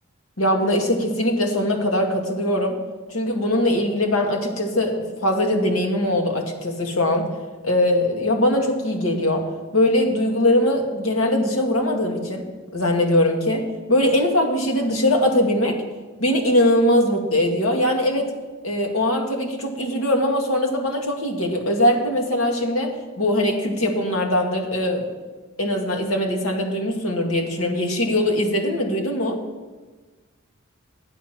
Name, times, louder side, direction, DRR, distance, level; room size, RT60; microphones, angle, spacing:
voice 1, 0.4-2.8 3.1-7.3 7.6-9.4 9.7-12.4 12.7-13.6 13.9-15.8 16.2-18.3 18.6-25.1 25.6-29.4, left 1 dB, 75° left, 2 dB, 1.9 m, -21 dB
11.0 x 9.4 x 5.9 m, 1.3 s
head